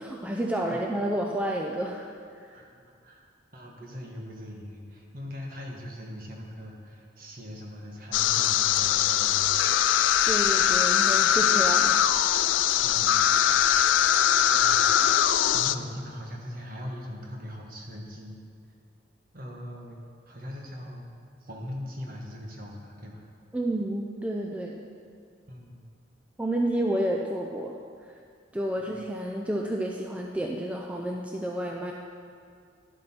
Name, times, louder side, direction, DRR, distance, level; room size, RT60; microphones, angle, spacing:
voice 1, 0.0-2.6 10.2-12.5 23.5-24.9 26.4-27.8 28.5-31.9, right 1 dB, 5° right, 0 dB, 0.4 m, -30 dB
voice 2, 3.5-9.5 12.8-13.4 14.5-15.0 15.5-18.4 19.3-20.0 20.3-21.1 21.4-23.2 25.5-25.9 28.7-29.0, left 1 dB, 45° right, -1 dB, 1.4 m, -40 dB
sound 1, 8.1-15.7, left 10 dB, 75° left, 0.3 m, -22 dB
11.5 x 7.5 x 4.4 m, 2.3 s
head